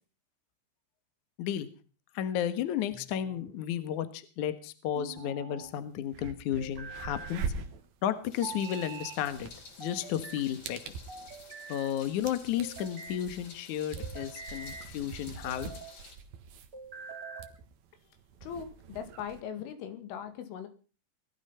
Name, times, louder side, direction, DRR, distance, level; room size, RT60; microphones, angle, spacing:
voice 1, 2.1-7.4 8.0-9.5 9.8-10.9 11.7-15.7, left 10 dB, 65° left, 11 dB, 1.9 m, -33 dB
sound 1, 2.9-3.6 4.9-5.7 6.6-7.4 8.4-9.2 9.8-10.5 11.1-11.9 12.6-13.2 14.0-14.9 15.4-16.0 16.7-17.6, right 5 dB, 35° right, 2.8 m, -45 dB
sound 2, 5.6-5.7 6.0-19.4, right 5 dB, 60° right, 2.9 m, -44 dB
Meow, 8.3-16.2, left 4 dB, 45° left, 5.3 m, -52 dB
voice 2, 18.4-20.7, left 8 dB, 80° left, 8 dB, 4.6 m, -40 dB
20.5 x 12.5 x 5.6 m, 0.38 s
omnidirectional pair, 5.6 m